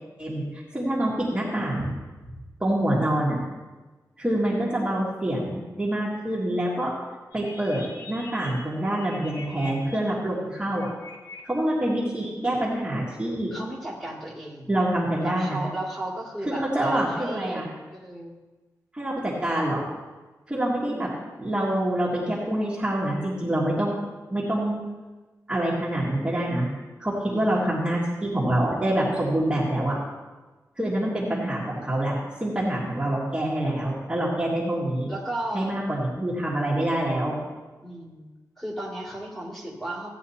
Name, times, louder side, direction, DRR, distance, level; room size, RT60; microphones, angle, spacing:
voice 1, 0.2-1.9 2.6-3.4 4.2-6.9 7.3-10.9 11.4-13.5 14.7-15.6 16.6-17.7 18.9-19.8 20.5-21.1 21.4-24.0 24.3-24.8 25.5-26.7 27.0-30.0 30.8-35.1 35.5-37.4, right 1 dB, 15° right, -7 dB, 1.9 m, -26 dB
sound 1, 7.3-9.9 10.6-11.4 11.7-12.3, left 3 dB, 75° left, 2.1 m, -44 dB
voice 2, 10.3-10.7 13.5-14.7 15.2-18.4 20.9-21.1 27.3-27.8 35.1-35.8 37.8-38.3 38.6-40.1, right 1 dB, 5° left, -4 dB, 2.4 m, -35 dB
16.0 x 9.3 x 2.8 m, 1.2 s
wide cardioid pair, 150°, 7 cm